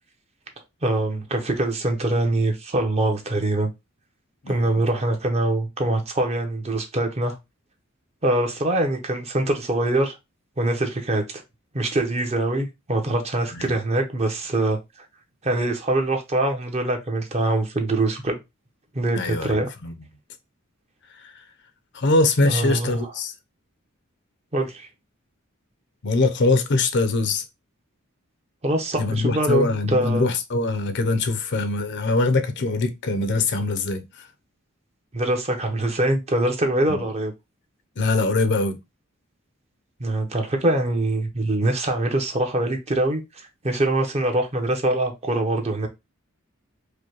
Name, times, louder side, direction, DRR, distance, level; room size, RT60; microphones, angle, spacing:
voice 1, 0.8-3.7 4.5-7.4 8.2-10.2 10.6-11.4 11.7-14.8 15.4-18.4 18.9-19.7 22.4-23.1 24.5-24.9 28.6-30.3 35.1-37.3 40.0-45.9, right 1 dB, 30° right, 0.8 m, -23 dB
voice 2, 4.4-4.8 13.5-13.7 19.1-19.9 21.1-21.3 21.9-23.3 26.0-27.4 29.0-34.3 36.9-37.0 38.0-38.8, left 3 dB, 55° left, 0.6 m, -23 dB
4.9 x 2.2 x 3.0 m
head